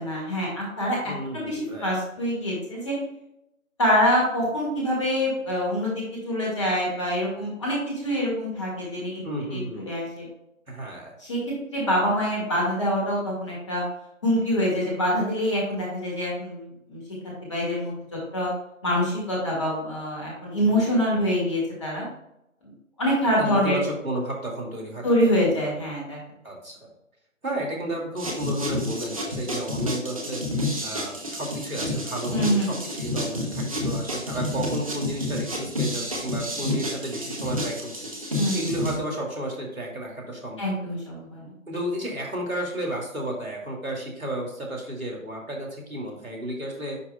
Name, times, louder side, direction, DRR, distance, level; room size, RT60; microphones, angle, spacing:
voice 1, 0.0-2.9 3.8-9.2 9.5-10.2 11.2-11.4 11.7-13.8 14.2-17.0 17.5-17.9 18.3-18.5 18.8-22.1 22.6-22.7 23.0-23.8 25.0-26.2 32.3-32.8 38.3-38.7 40.6-41.5, equal, 20° left, -4 dB, 1.8 m, -25 dB
voice 2, 1.0-1.9 9.2-9.8 10.7-11.1 20.7-21.0 23.4-26.1 26.4-26.9 27.4-30.4 30.8-38.0 38.5-40.6 41.7-47.0, right 1 dB, 90° right, -1 dB, 2.4 m, -32 dB
sound 1, 28.2-39.0, left 1 dB, 25° right, 0.9 m, -30 dB
9.5 x 5.0 x 2.2 m, 0.83 s
figure-of-eight pair, 155°, 41 cm